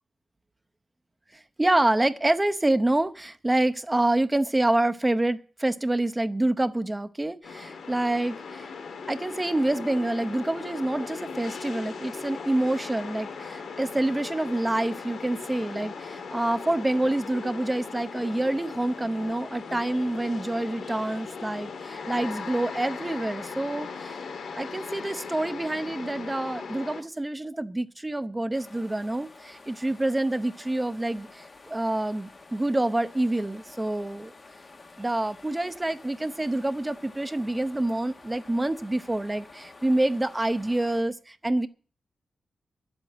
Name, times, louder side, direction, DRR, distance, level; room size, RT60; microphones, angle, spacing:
voice 1, 1.3-8.7 9.1-24.2 24.5-34.3 35.0-41.7, right 1 dB, 15° right, 11 dB, 0.8 m, -27 dB
sound 1, 7.4-27.0, left 5 dB, 85° left, 1.8 m, -38 dB
sound 2, 28.5-41.0, left 3 dB, 35° left, 1.3 m, -50 dB
11.0 x 8.0 x 8.5 m, 0.42 s
wide cardioid pair, 140°, 0 cm